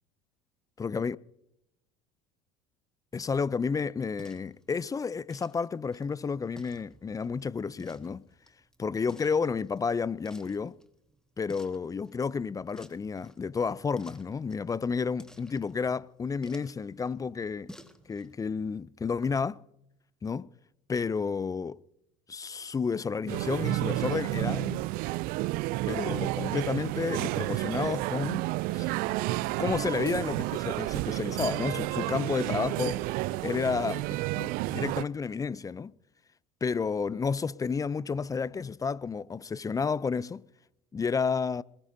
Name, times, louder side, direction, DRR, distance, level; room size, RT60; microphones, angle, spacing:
voice 1, 0.8-1.2 3.1-8.2 8.8-10.8 11.4-17.7 18.1-19.6 20.2-20.5 20.9-21.8 22.3-24.8 25.9-28.4 28.7-28.9 29.6-33.0 33.4-35.9 36.6-40.4 40.9-41.6, left 5 dB, 20° left, 0.5 m, -31 dB
sound 1, 3.1-18.3, equal, 5° left, 1.7 m, -55 dB
sound 2, 23.3-35.0, right 19 dB, 60° right, 0.5 m, -31 dB
21.5 x 21.0 x 2.7 m
hypercardioid pair, 75°, 17 cm